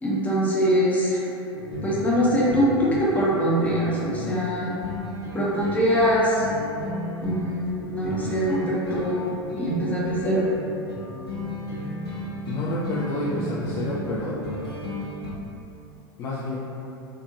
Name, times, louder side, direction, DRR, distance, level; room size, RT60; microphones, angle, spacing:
voice 1, 0.0-1.2 1.8-4.8 5.3-6.4 7.2-10.5, equal, 10° left, -8 dB, 0.7 m, -23 dB
sound 1, 1.5-15.3, left 1 dB, 70° left, 0.7 m, -34 dB
voice 2, 12.4-14.3 16.2-16.5, left 1 dB, 30° left, -8 dB, 0.4 m, -29 dB
2.8 x 2.6 x 2.4 m, 2.8 s
figure-of-eight pair, 85°, 13 cm